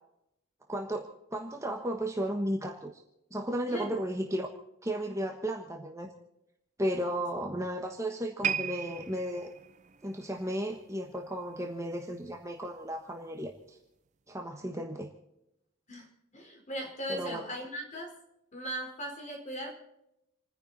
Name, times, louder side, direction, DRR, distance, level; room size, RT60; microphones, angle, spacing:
voice 1, 0.7-2.9 3.3-4.5 4.8-6.1 6.8-9.5 10.0-13.8 14.3-15.1 17.1-17.4, right 1 dB, 15° right, 2 dB, 1.3 m, -34 dB
sound 1, 8.4-11.7 12.0-12.3 13.0-13.1, right 7 dB, 35° right, 0.5 m, -37 dB
voice 2, 16.3-18.1 18.5-19.7, right 1 dB, 35° left, 1 dB, 4.3 m, -38 dB
29.5 x 10.5 x 4.2 m, 0.83 s
head